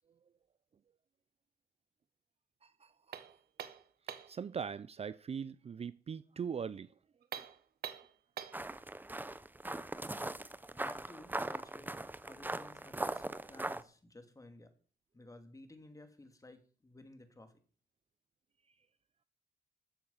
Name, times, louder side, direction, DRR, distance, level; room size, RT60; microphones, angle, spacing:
sound 1, 3.1-4.4 7.2-8.7, right 9 dB, 75° right, 1.4 m, -45 dB
voice 1, 4.3-6.9, right 7 dB, 40° right, 0.5 m, -40 dB
sound 2, 8.5-13.8, right 2 dB, 10° right, 0.9 m, -40 dB
voice 2, 10.7-12.0 12.2-14.7 15.1-17.5, left 2 dB, 20° left, 2.6 m, -55 dB
13.5 x 7.4 x 7.3 m
cardioid pair, 80°, 16 cm